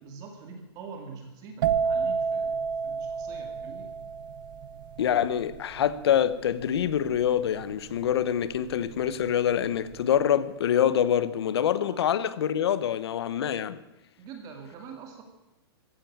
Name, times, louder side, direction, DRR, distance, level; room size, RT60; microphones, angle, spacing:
voice 1, 0.0-2.6 2.8-3.9 11.9-12.1 14.2-15.2, right 5 dB, 25° right, 2.2 m, -44 dB
sound 1, 1.6-9.2 9.5-9.9, right 6 dB, 50° right, 0.9 m, -31 dB
voice 2, 5.0-13.8, left 9 dB, 70° left, 1.0 m, -25 dB
15.5 x 9.2 x 8.7 m
hypercardioid pair, 160°, 14 cm